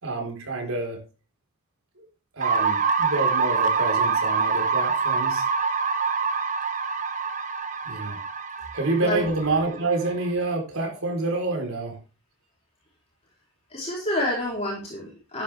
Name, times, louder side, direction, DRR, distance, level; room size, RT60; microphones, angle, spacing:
voice 1, 0.0-1.0 2.0-2.1 2.3-5.4 7.8-8.2 8.7-12.0, right 2 dB, 70° right, 2 dB, 4.4 m, -28 dB
sound 1, 2.4-10.3, right 5 dB, 35° right, 1.0 m, -25 dB
voice 2, 13.7-15.4, left 1 dB, 30° left, -3 dB, 3.8 m, -28 dB
12.5 x 10.5 x 3.5 m, 0.33 s
head